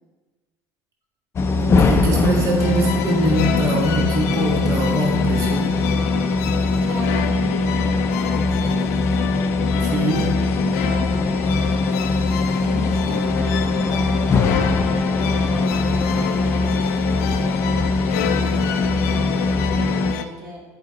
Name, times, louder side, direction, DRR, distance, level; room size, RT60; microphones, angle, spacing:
sound 1, 1.4-20.1, left 3 dB, 30° left, 0.5 m, -21 dB
voice 1, 1.6-5.8 9.8-10.3, right 1 dB, 40° right, -1 dB, 1.6 m, -23 dB
sound 2, 2.6-20.2, left 10 dB, 85° left, 0.5 m, -28 dB
voice 2, 6.2-8.9 10.4-11.9 12.6-14.5 14.9-16.9 17.3-20.6, right 1 dB, 70° right, -2 dB, 1.7 m, -37 dB
sound 3, 12.9-16.9, left 2 dB, 15° left, 1.3 m, -34 dB
8.3 x 4.9 x 4.0 m, 1.2 s
supercardioid pair, 100°, 9 cm